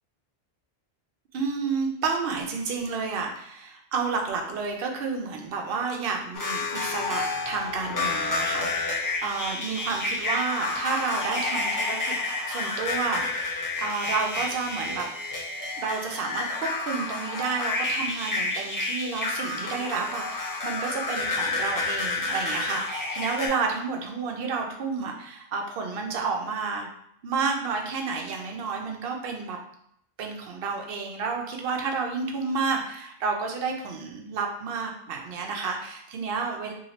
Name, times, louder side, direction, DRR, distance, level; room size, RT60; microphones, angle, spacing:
voice 1, 1.3-12.2 12.5-15.1 15.8-26.9 27.2-29.6 30.2-36.7, right 4 dB, 70° right, 2 dB, 0.8 m, -30 dB
sound 1, 6.3-23.5, left 3 dB, 25° left, 0.5 m, -30 dB
2.9 x 2.7 x 2.8 m, 0.72 s
omnidirectional pair, 1.0 m